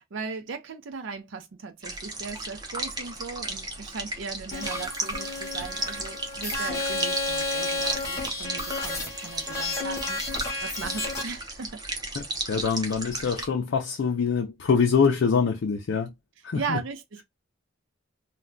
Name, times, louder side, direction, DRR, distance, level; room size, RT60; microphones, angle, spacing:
voice 1, 0.0-11.8 16.5-17.2, right 5 dB, 65° right, 0.5 m, -38 dB
sound 1, 1.8-13.5, right 2 dB, 20° right, 0.6 m, -35 dB
sound 2, 4.5-11.2, left 2 dB, 15° left, 0.8 m, -32 dB
voice 2, 12.2-16.1 16.4-16.8, left 5 dB, 65° left, 0.4 m, -24 dB
2.2 x 2.1 x 3.7 m
head